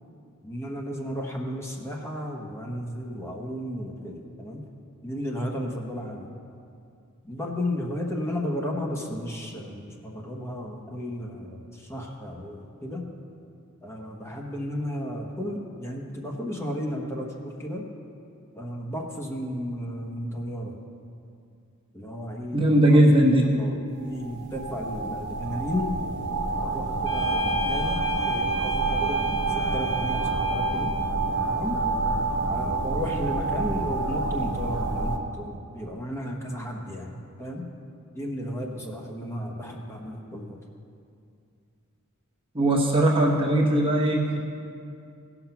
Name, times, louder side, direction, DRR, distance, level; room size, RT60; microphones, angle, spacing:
voice 1, 0.4-4.6 5.0-6.3 7.2-13.1 13.8-17.9 18.5-20.8 21.9-25.9 26.6-28.0 28.2-31.0 31.5-31.8 32.5-37.1 37.4-37.6 38.1-40.6, equal, 10° left, -1 dB, 1.1 m, -34 dB
voice 2, 22.5-23.5 42.5-44.4, right 1 dB, 25° right, -1 dB, 0.9 m, -19 dB
sound 1, 24.1-35.2, right 3 dB, 55° right, 1.0 m, -28 dB
sound 2, 27.0-31.2, equal, 60° left, 2.0 m, -32 dB
16.5 x 6.0 x 5.8 m, 2.4 s
head